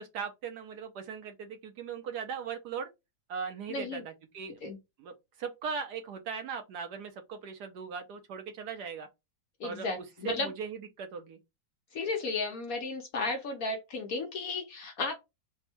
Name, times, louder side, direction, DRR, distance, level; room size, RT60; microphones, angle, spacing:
voice 1, 0.0-2.9 3.3-4.6 5.0-9.1 9.6-11.4, right 6 dB, 70° right, 1.1 m, -39 dB
voice 2, 3.7-4.0 4.6-4.8 9.6-10.5 11.9-15.1, left 3 dB, 60° left, 1.0 m, -34 dB
3.5 x 2.1 x 4.2 m
omnidirectional pair, 2.0 m